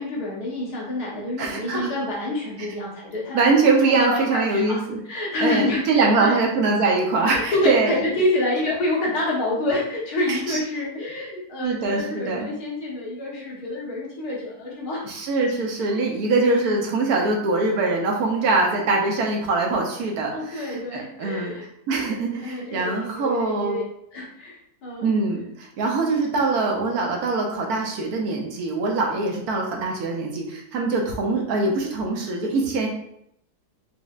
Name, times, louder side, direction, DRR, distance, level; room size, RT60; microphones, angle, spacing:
voice 1, 0.0-3.4 4.0-6.4 7.3-15.0 15.9-16.0 20.3-21.7 22.4-23.8 24.1-25.1, left 1 dB, 70° left, -5 dB, 1.6 m, -27 dB
voice 2, 1.4-1.9 3.3-5.0 5.4-7.9 10.3-10.6 11.6-12.5 15.0-21.5 21.9-23.8 25.0-32.9, right 3 dB, 75° right, 0 dB, 1.1 m, -23 dB
5.2 x 2.0 x 2.4 m, 0.75 s
omnidirectional pair, 1.7 m